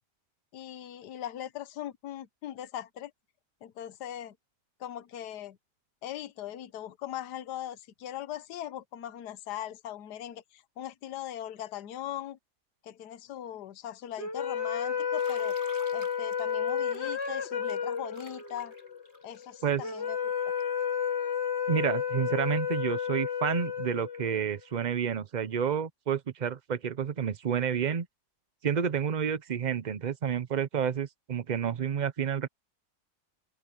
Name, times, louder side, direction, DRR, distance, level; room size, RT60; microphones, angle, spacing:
voice 1, 0.5-3.1 3.6-4.3 4.8-5.6 6.0-12.4 12.8-15.6 15.9-18.7 19.2-20.5, left 11 dB, 80° left, 1.4 m, -40 dB
sound 1, 14.2-24.6, left 7 dB, 40° left, 2.0 m, -32 dB
Bathtub (filling or washing), 15.1-20.8, right 1 dB, 40° right, 8.0 m, -54 dB
voice 2, 21.7-28.1 28.6-32.5, right 7 dB, 60° right, 0.4 m, -30 dB
open air
omnidirectional pair, 1.7 m